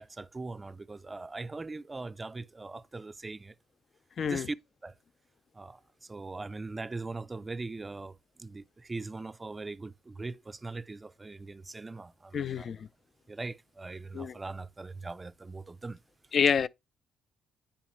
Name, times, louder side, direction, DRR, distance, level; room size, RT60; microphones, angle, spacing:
voice 1, 0.0-3.5 4.3-4.6 4.8-4.9 5.5-12.7 13.3-16.0, right 3 dB, 25° right, 0.5 m, -41 dB
voice 2, 4.2-4.5 12.3-12.9 14.1-14.3 16.3-16.7, left 7 dB, 55° left, 0.3 m, -27 dB
8.8 x 5.0 x 3.1 m
supercardioid pair, 70°, 0 cm